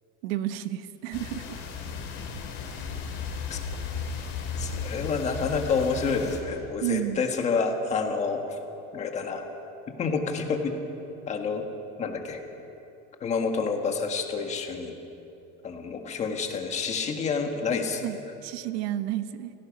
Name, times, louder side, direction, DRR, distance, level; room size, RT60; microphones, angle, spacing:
voice 1, 0.2-1.6 6.8-7.2 18.0-18.2 18.4-19.5, right 13 dB, 80° right, 11 dB, 1.1 m, -31 dB
sound 1, 1.1-6.4, left 5 dB, 40° left, 3.0 m, -35 dB
voice 2, 4.6-8.6 8.9-9.5 9.9-10.7 11.3-11.6 12.0-12.4 13.2-14.9 15.6-18.1, left 5 dB, 20° left, 4 dB, 1.5 m, -28 dB
29.5 x 17.0 x 5.2 m, 2.8 s
cardioid pair, 180°, 30 cm